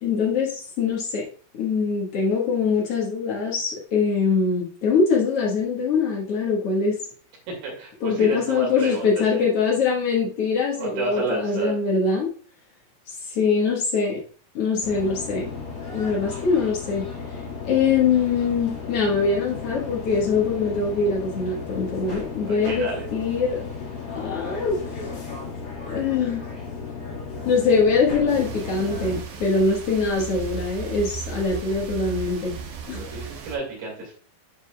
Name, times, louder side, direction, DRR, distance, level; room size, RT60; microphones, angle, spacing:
voice 1, 0.0-1.2 1.6-7.0 8.0-12.3 13.3-14.2 14.5-15.5 15.9-17.1 17.6-23.6 24.1-24.8 25.9-26.4 27.4-32.5 32.9-33.2, left 5 dB, 85° left, -3 dB, 1.3 m, -23 dB
voice 2, 7.5-9.4 10.8-11.8 22.1-23.1 32.9-34.1, right 3 dB, 60° right, -1 dB, 3.6 m, -31 dB
sound 1, 14.8-29.2, left 4 dB, 40° left, 1.6 m, -35 dB
sound 2, 28.3-33.6, right 7 dB, 85° right, 1.7 m, -36 dB
10.5 x 4.8 x 2.3 m, 0.41 s
omnidirectional pair, 5.0 m